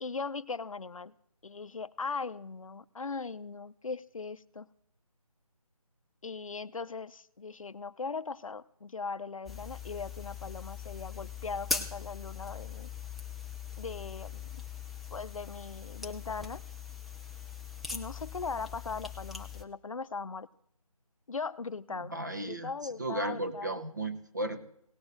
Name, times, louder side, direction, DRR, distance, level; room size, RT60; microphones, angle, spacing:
voice 1, 0.0-1.1 1.4-4.7 6.2-12.9 13.8-14.6 15.1-16.6 17.9-20.5 21.3-22.1 22.4-23.8, left 4 dB, 60° left, 13 dB, 0.6 m, -39 dB
sound 1, 9.5-19.6, left 5 dB, ahead, 0.3 m, -41 dB
voice 2, 21.9-22.7 23.0-24.7, right 2 dB, 30° right, 7 dB, 0.8 m, -35 dB
18.0 x 6.9 x 4.0 m, 0.70 s
figure-of-eight pair, 180°, 19 cm